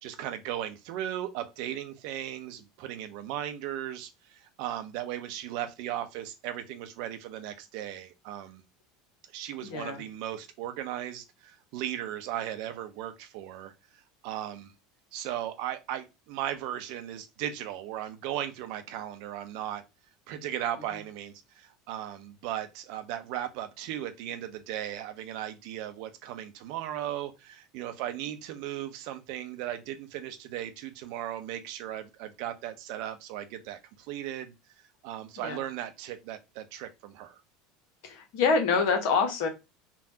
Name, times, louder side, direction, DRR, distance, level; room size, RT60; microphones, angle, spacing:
voice 1, 0.0-8.6 9.3-14.7 15.1-19.8 20.3-34.5 35.0-37.4, right 11 dB, 55° right, 0.6 m, -37 dB
voice 2, 9.6-10.0 35.4-35.6 38.0-39.5, left 5 dB, 60° left, 1.0 m, -26 dB
3.5 x 2.3 x 2.7 m
figure-of-eight pair, 75°, 0 cm